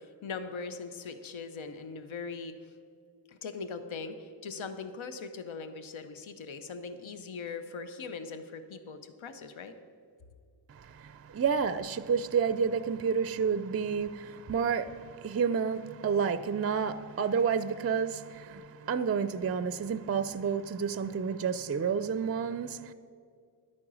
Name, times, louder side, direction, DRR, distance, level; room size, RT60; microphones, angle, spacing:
voice 1, 0.0-2.7 3.3-9.8, left 4 dB, 80° left, 9 dB, 0.8 m, -40 dB
voice 2, 10.7-22.9, right 6 dB, 35° right, 14 dB, 0.4 m, -30 dB
11.5 x 8.7 x 6.1 m, 2.2 s
wide cardioid pair, 80°, 46 cm